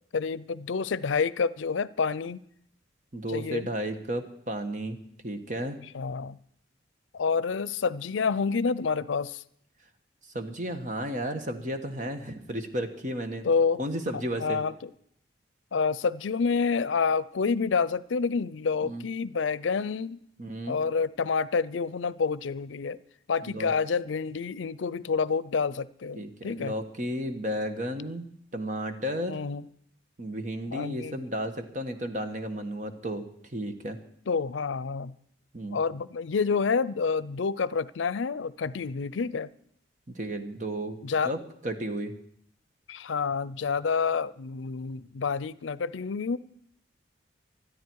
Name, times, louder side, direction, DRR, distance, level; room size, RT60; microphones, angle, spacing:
voice 1, 0.1-2.4 3.3-3.7 5.9-6.4 7.1-9.4 13.4-13.8 14.4-14.9 15.7-20.2 20.7-23.0 23.3-26.7 29.3-29.6 30.7-31.2 34.3-35.1 35.7-39.5 41.0-41.3 42.9-46.4, left 5 dB, 90° left, 19 dB, 0.5 m, -28 dB
voice 2, 3.1-5.0 5.2-5.8 10.3-13.5 13.8-14.6 18.8-19.1 20.4-20.8 23.4-23.7 26.1-28.2 28.5-29.4 30.2-33.2 33.5-34.0 35.5-35.8 40.1-41.0 41.2-42.1, right 1 dB, 40° right, 7 dB, 1.4 m, -33 dB
20.0 x 13.0 x 4.7 m, 0.68 s
head